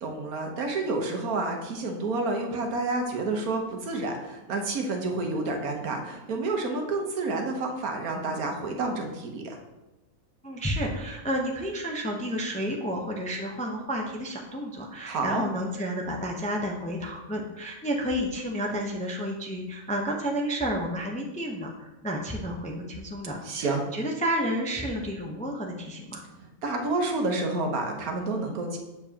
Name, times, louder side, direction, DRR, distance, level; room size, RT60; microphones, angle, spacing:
voice 1, 0.0-9.6 15.0-15.4 23.4-23.8 26.3-28.8, right 3 dB, 80° right, 2 dB, 1.5 m, -29 dB
voice 2, 10.4-26.2, equal, 10° left, 0 dB, 0.5 m, -31 dB
7.4 x 7.1 x 2.9 m, 1.0 s
omnidirectional pair, 1.5 m